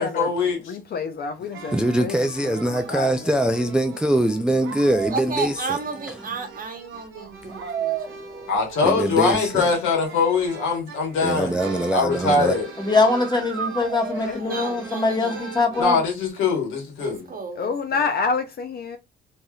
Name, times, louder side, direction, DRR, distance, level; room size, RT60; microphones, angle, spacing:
voice 1, 0.0-0.7 8.5-11.5 11.9-12.7 15.8-17.3, left 4 dB, 90° left, 1.2 m, -22 dB
voice 2, 0.7-2.2 2.4-3.3 14.2-14.7 17.6-19.0, left 5 dB, 50° left, 0.5 m, -28 dB
sound 1, 1.5-15.8, right 6 dB, 75° right, 1.0 m, -36 dB
voice 3, 1.7-5.8 7.5-7.6 8.8-9.7 11.2-12.5, right 1 dB, 5° right, 0.3 m, -23 dB
voice 4, 5.1-8.6 14.4-15.5 17.0-18.1, right 4 dB, 45° right, 0.9 m, -33 dB
voice 5, 12.8-16.0, left 3 dB, 20° left, 1.0 m, -22 dB
3.2 x 2.7 x 2.3 m
cardioid pair, 90°, 20 cm